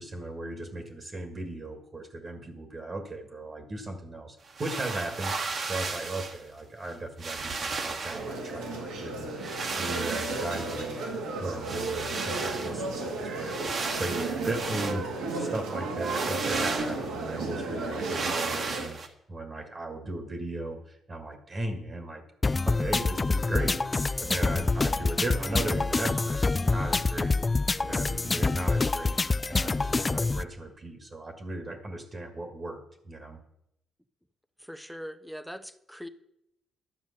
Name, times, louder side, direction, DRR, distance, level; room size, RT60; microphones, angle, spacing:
voice 1, 0.0-11.0 11.4-13.6 14.0-19.0 19.3-22.2 22.6-27.4 27.8-29.2 29.5-33.4, right 2 dB, 35° right, 5 dB, 1.7 m, -37 dB
sound 1, 4.5-6.4 6.9-7.0 7.2-8.3 9.4-11.0 11.6-12.8 13.4-15.0 16.0-17.1 18.0-19.1, right 4 dB, 50° right, 1.6 m, -34 dB
sound 2, 8.1-18.9, right 2 dB, 85° right, 2.3 m, -34 dB
sound 3, 22.4-30.4, left 3 dB, 25° left, 0.4 m, -26 dB
voice 2, 34.6-36.1, equal, ahead, 12 dB, 0.8 m, -41 dB
12.0 x 7.0 x 6.8 m, 0.80 s
cardioid pair, 90°, 0 cm